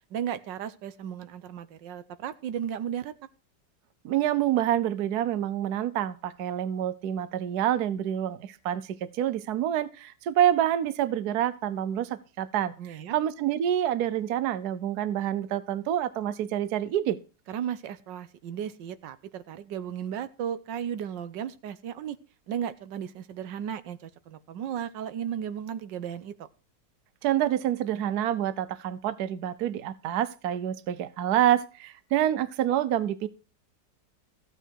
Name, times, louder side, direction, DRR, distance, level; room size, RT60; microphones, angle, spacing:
voice 1, 0.1-3.1 12.8-13.2 17.5-22.2 22.5-26.5, right 9 dB, 85° right, 13 dB, 1.5 m, -35 dB
voice 2, 4.0-12.7 13.1-17.2 27.2-33.3, right 11 dB, 65° right, 16 dB, 1.3 m, -27 dB
15.0 x 8.9 x 4.6 m, 0.34 s
omnidirectional pair, 1.9 m